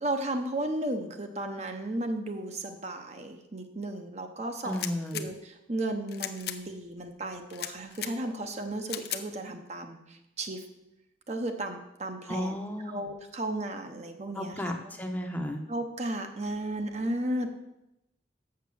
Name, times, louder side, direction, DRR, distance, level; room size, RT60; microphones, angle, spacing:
voice 1, 0.0-4.8 5.1-10.6 11.3-12.6 12.9-14.7 15.7-17.5, right 1 dB, 35° right, 5 dB, 0.8 m, -34 dB
voice 2, 4.6-5.2 12.3-13.0 14.3-15.6, left 1 dB, 10° left, 3 dB, 0.8 m, -33 dB
sound 1, 4.7-5.3 6.1-6.6 7.5-8.1 8.9-9.2, left 11 dB, 60° left, 0.6 m, -36 dB
7.1 x 6.7 x 6.8 m, 0.89 s
head